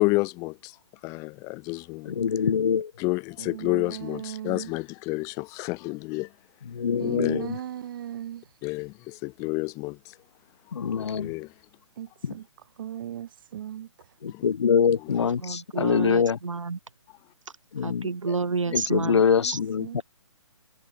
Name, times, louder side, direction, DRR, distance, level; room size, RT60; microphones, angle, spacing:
voice 1, 0.0-2.2 3.0-6.3 7.0-7.5 8.6-10.2 10.9-11.5 14.3-14.5 14.9-15.3, left 26 dB, 20° left, 1.1 m, -30 dB
voice 2, 2.1-2.9 6.7-7.5 10.7-11.3 12.2-12.3 14.2-16.4 17.7-18.1 18.7-20.0, left 7 dB, 60° left, 2.1 m, -24 dB
voice 3, 3.4-4.7 7.0-8.6 11.9-12.5 12.8-14.1 18.7-18.8 19.1-19.5 19.8-20.0, right 11 dB, 45° right, 3.5 m, -37 dB
voice 4, 15.2-16.8 17.8-19.2 19.5-19.6, right 4 dB, 80° right, 7.0 m, -30 dB
hypercardioid pair, 145°, 16 cm